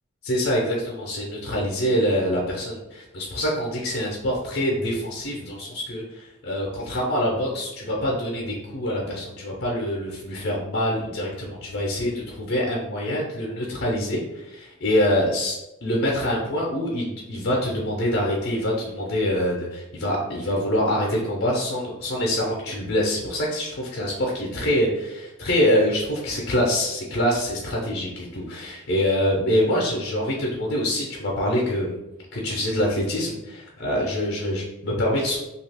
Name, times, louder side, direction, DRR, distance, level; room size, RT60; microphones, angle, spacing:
voice 1, 0.2-32.0 32.3-35.4, equal, 50° left, -2 dB, 0.6 m, -25 dB
2.8 x 2.4 x 3.3 m, 0.95 s
head